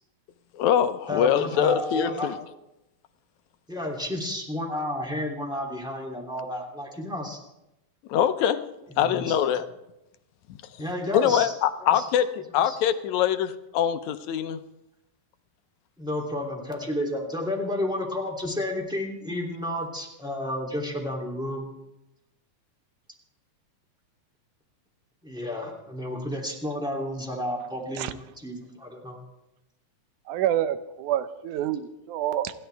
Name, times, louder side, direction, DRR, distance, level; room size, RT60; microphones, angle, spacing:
voice 1, 0.5-2.3 8.1-8.6 9.0-9.6 11.1-14.6, left 9 dB, 75° left, 10 dB, 2.1 m, -23 dB
voice 2, 1.1-2.6 3.7-7.4 9.0-9.4 10.8-11.5 11.8-12.1 12.6-12.8 16.0-21.7 25.2-29.2, left 1 dB, ahead, -1 dB, 2.6 m, -31 dB
voice 3, 30.3-32.5, right 11 dB, 90° right, 12 dB, 2.3 m, -27 dB
28.0 x 11.5 x 3.5 m, 0.91 s
omnidirectional pair, 3.4 m